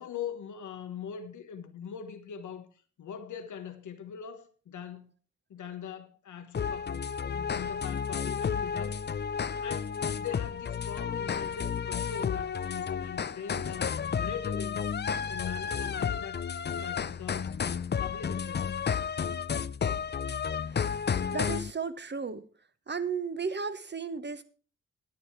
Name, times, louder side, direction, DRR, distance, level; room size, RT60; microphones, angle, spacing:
voice 1, 0.0-2.7 3.0-5.1 5.5-9.0 9.2-9.3 9.6-13.9 14.2-14.9 15.2-16.4 16.8-17.6 18.0-18.9, left 7 dB, 85° left, 1.2 m, -41 dB
sound 1, 6.5-21.7, left 7 dB, 35° left, 0.5 m, -32 dB
voice 2, 21.3-22.4 22.9-24.4, right 5 dB, 35° right, 1.2 m, -34 dB
9.9 x 9.6 x 4.6 m
cardioid pair, 55°, 29 cm